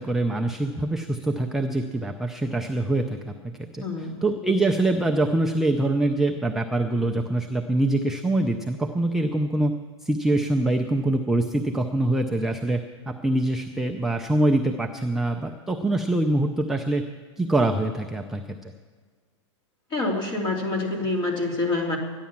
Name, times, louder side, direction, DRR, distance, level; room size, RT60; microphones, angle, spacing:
voice 1, 0.0-3.3 3.7-3.8 4.2-9.7 10.0-12.8 13.1-17.0 17.4-18.7, right 2 dB, ahead, 2 dB, 0.5 m, -24 dB
voice 2, 3.8-4.6 19.9-22.0, left 2 dB, 25° left, 0 dB, 2.9 m, -27 dB
13.5 x 10.5 x 7.2 m, 1.5 s
hypercardioid pair, 145°, 16 cm